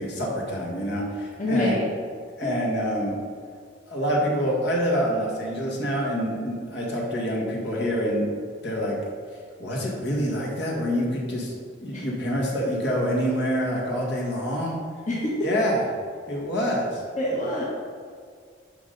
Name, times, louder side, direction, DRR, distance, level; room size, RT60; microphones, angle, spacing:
voice 1, 0.0-1.8 2.4-3.1 3.9-8.3 8.6-9.0 9.6-11.5 11.8-14.8 15.4-15.8 16.3-17.0, equal, 60° left, -3 dB, 1.9 m, -26 dB
voice 2, 1.4-1.8 11.9-12.1 15.1-15.3 17.2-17.6, left 1 dB, 40° left, -7 dB, 1.4 m, -25 dB
11.0 x 5.2 x 4.0 m, 2.1 s
head